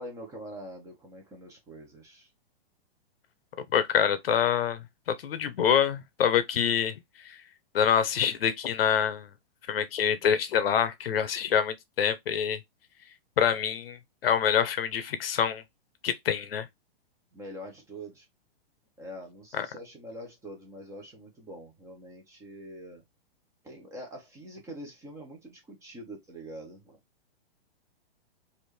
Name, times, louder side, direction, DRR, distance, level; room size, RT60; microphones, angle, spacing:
voice 1, 0.0-2.3 17.3-18.3 19.0-23.0 23.6-27.0, equal, 10° right, 1.0 m, -44 dB
voice 2, 3.7-4.8 5.1-6.9 7.2-7.4 7.7-9.3 9.7-12.6 13.4-15.6 16.0-16.7 19.5-19.7, left 8 dB, 70° left, 0.9 m, -26 dB
4.3 x 2.8 x 3.2 m
hypercardioid pair, 160°, 30 cm